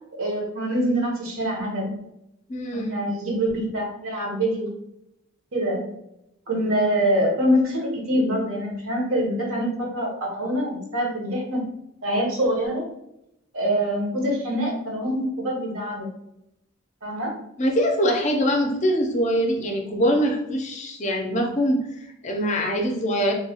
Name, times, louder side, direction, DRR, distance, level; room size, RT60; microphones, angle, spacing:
voice 1, 0.2-2.0 2.7-4.7 5.5-5.9 6.5-11.6 12.0-12.8 13.5-16.1 17.0-17.4, equal, 75° right, -2 dB, 1.0 m, -25 dB
voice 2, 2.5-3.0 17.6-23.3, equal, 35° left, 2 dB, 0.4 m, -23 dB
3.1 x 2.3 x 2.8 m, 0.81 s
head